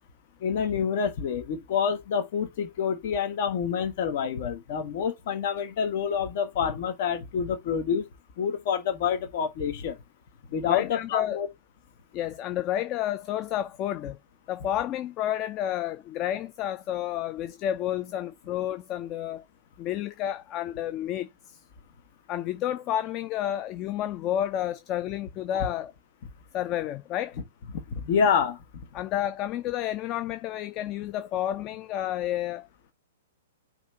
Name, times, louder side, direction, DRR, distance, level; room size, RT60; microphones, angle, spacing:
voice 1, 0.4-8.1 8.4-10.0 10.5-11.5 27.9-28.8, left 7 dB, 50° left, 1.3 m, -27 dB
voice 2, 10.7-11.4 12.1-14.2 14.5-19.5 19.8-21.6 22.3-25.9 26.5-27.4 28.9-32.7, left 12 dB, 35° left, 0.5 m, -30 dB
5.7 x 3.3 x 5.5 m
figure-of-eight pair, 110°, 0 cm